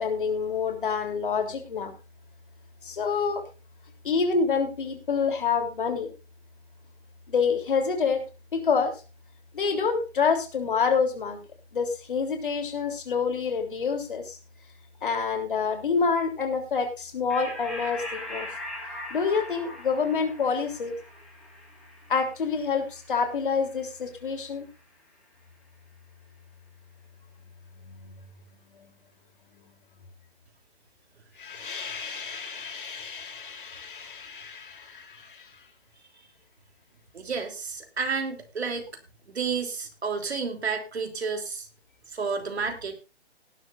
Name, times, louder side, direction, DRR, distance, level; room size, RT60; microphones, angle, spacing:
voice 1, 0.0-1.9 2.8-3.4 4.0-6.1 7.3-8.2 8.5-8.9 9.5-11.4 11.7-14.4 15.0-18.5 19.1-21.0 22.1-24.7 27.9-28.2 31.4-35.5, left 5 dB, 50° left, 5 dB, 3.5 m, -27 dB
sound 1, 17.3-24.2, left 1 dB, ahead, 1.7 m, -41 dB
voice 2, 37.1-38.9 39.3-41.7 42.1-42.9, right 5 dB, 70° right, 5 dB, 3.4 m, -31 dB
18.5 x 11.0 x 2.6 m, 0.30 s
hypercardioid pair, 175°, 34 cm